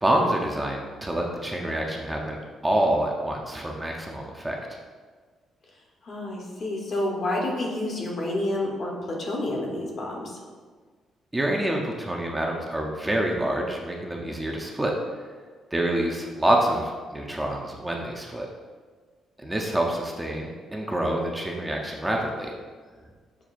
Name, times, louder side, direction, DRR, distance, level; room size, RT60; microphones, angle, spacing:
voice 1, 0.0-4.8 11.3-14.9 15.7-18.5 19.4-22.5, right 1 dB, 10° right, 0 dB, 0.5 m, -27 dB
voice 2, 6.0-10.4, left 1 dB, 50° left, -1 dB, 0.8 m, -29 dB
5.8 x 2.3 x 2.4 m, 1.5 s
cardioid pair, 90°, 0 cm